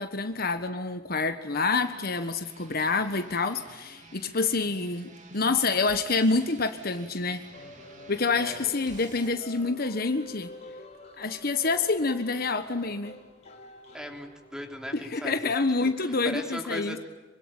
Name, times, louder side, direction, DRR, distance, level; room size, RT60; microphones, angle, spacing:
voice 1, 0.0-7.4 8.1-10.5 11.2-13.1 14.9-17.0, left 3 dB, 50° left, 9 dB, 1.4 m, -27 dB
sound 1, 1.7-9.3, right 2 dB, 40° right, 3.3 m, -50 dB
sound 2, 7.5-15.3, left 1 dB, 35° left, 4.4 m, -48 dB
voice 2, 8.3-8.7 13.9-15.5 16.0-17.0, equal, 5° right, 4 dB, 3.2 m, -38 dB
26.0 x 24.5 x 9.0 m, 1.2 s
head